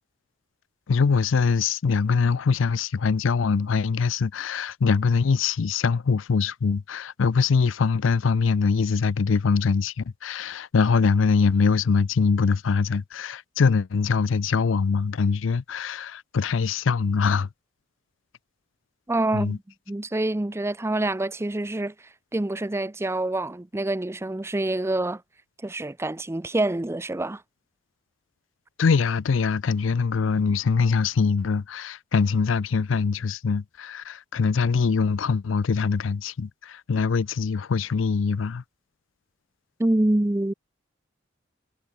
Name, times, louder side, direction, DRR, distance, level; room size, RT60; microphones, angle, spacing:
voice 1, 0.9-17.5 19.3-19.6 28.8-38.6, left 5 dB, 85° left, 0.5 m, -23 dB
voice 2, 19.1-19.6 19.9-21.9 22.3-25.2 25.6-27.4 39.8-40.5, right 1 dB, 15° right, 0.5 m, -26 dB
head